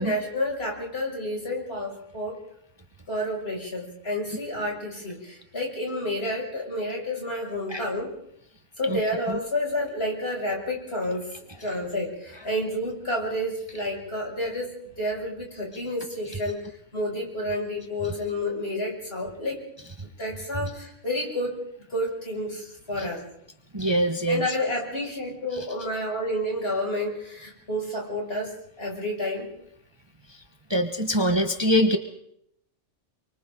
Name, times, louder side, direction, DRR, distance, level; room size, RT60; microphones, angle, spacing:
voice 1, 0.0-2.4 3.1-8.1 8.8-19.6 20.2-21.5 21.9-23.2 24.3-29.5, left 1 dB, 55° left, -1 dB, 6.6 m, -30 dB
voice 2, 23.7-24.4 30.7-32.0, equal, 20° right, 5 dB, 1.4 m, -23 dB
30.0 x 24.0 x 3.9 m, 0.73 s
omnidirectional pair, 1.3 m